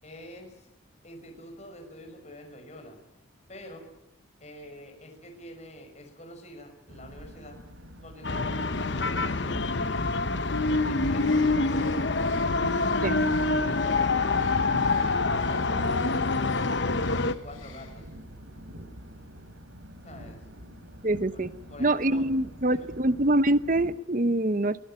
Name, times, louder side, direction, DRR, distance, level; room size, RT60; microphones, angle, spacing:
voice 1, 0.0-0.7 1.0-3.0 3.5-3.9 4.4-7.6 8.0-10.2 10.7-12.3 13.6-16.6 17.1-18.1 20.0-20.4 21.3-21.4 21.7-22.3 22.7-22.9, left 1 dB, 35° left, 4 dB, 6.1 m, -46 dB
sound 1, 6.9-24.0, equal, 85° right, 3.3 m, -45 dB
sound 2, 8.2-17.3, left 3 dB, 60° left, 1.0 m, -26 dB
Bird, 11.1-18.2, left 7 dB, 75° left, 6.3 m, -53 dB
voice 2, 21.0-21.5 21.8-24.8, right 1 dB, 40° right, 14 dB, 0.9 m, -25 dB
24.5 x 16.5 x 9.0 m, 0.89 s
head